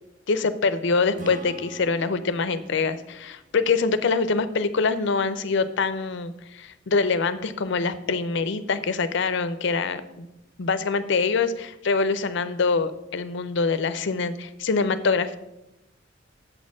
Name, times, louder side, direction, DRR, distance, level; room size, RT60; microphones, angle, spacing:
voice 1, 0.3-10.3 10.6-15.4, left 4 dB, 65° left, 13 dB, 0.5 m, -24 dB
Acoustic guitar / Strum, 1.2-4.7, right 1 dB, 40° right, 0.8 m, -43 dB
7.8 x 4.3 x 6.0 m, 0.90 s
head